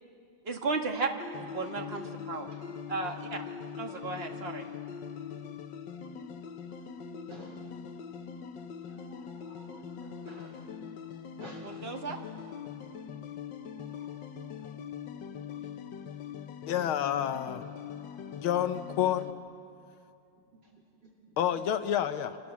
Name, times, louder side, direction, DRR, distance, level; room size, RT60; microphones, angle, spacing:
voice 1, 0.4-1.1 1.4-2.5 2.9-3.4 3.8-4.6 11.6-12.2, right 4 dB, 30° right, 3 dB, 1.9 m, -34 dB
sound 1, 1.2-19.3, left 7 dB, 65° left, 1.6 m, -42 dB
voice 2, 4.3-4.7 6.0-6.5 7.0-7.6 8.6-10.6 11.4-11.7 13.7-14.9 16.8-16.9 18.0-18.2 20.5-20.7 21.0-21.7 22.0-22.1, right 1 dB, 55° right, -2 dB, 3.2 m, -54 dB
voice 3, 16.7-17.6 18.4-19.3 21.4-22.4, left 10 dB, 80° left, 10 dB, 1.6 m, -29 dB
27.5 x 26.0 x 7.2 m, 2.5 s
omnidirectional pair, 2.3 m